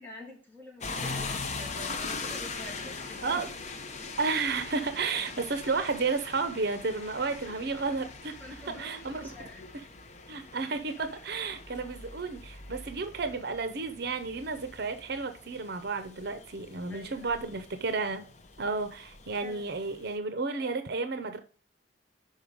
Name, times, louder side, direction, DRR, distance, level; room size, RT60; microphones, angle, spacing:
voice 1, 0.0-3.4 8.4-9.7 11.5-11.9 16.9-17.3 19.4-19.6 20.5-20.7, left 1 dB, 10° left, 2.7 m, -47 dB
sound 1, 0.8-20.2, left 4 dB, 40° left, 0.8 m, -42 dB
voice 2, 4.2-8.4 8.8-9.2 10.3-18.3 18.6-21.4, right 4 dB, 60° right, 0.7 m, -32 dB
5.6 x 5.4 x 5.0 m
head